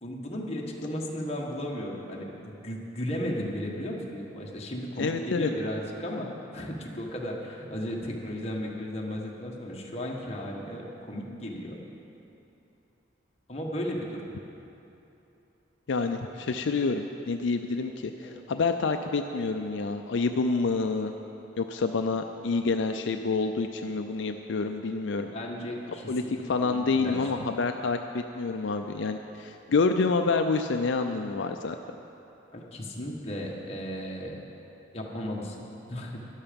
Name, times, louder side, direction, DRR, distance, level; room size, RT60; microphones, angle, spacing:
voice 1, 0.0-11.8 13.5-14.3 18.2-18.4 25.3-27.4 32.5-34.4 34.9-36.2, equal, 30° left, -2 dB, 1.4 m, -35 dB
voice 2, 5.0-5.5 15.9-21.1 21.6-25.3 26.1-26.2 26.5-31.8, left 4 dB, 75° left, 6 dB, 0.5 m, -28 dB
13.0 x 11.5 x 5.2 m, 3.0 s
head